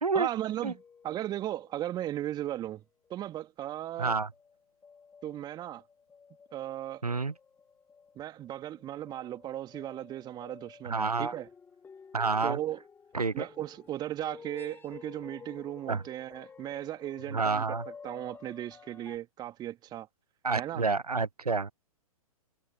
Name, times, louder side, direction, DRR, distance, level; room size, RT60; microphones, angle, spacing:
voice 1, 0.1-2.8 3.1-4.2 5.2-5.8 6.5-7.0 8.2-11.5 12.4-12.8 13.3-17.8 18.0-20.1 20.6-20.8, right 13 dB, 20° right, 2.7 m, -36 dB
sound 1, 0.7-2.5 3.0-3.2 4.3-19.2, left 6 dB, 10° left, 2.4 m, -52 dB
voice 2, 4.0-4.3 7.0-7.3 10.8-11.4 12.1-12.6 13.1-13.5 15.9-16.0 17.3-17.9 20.4-21.7, right 4 dB, 85° right, 0.6 m, -29 dB
figure-of-eight pair, 115°, 19 cm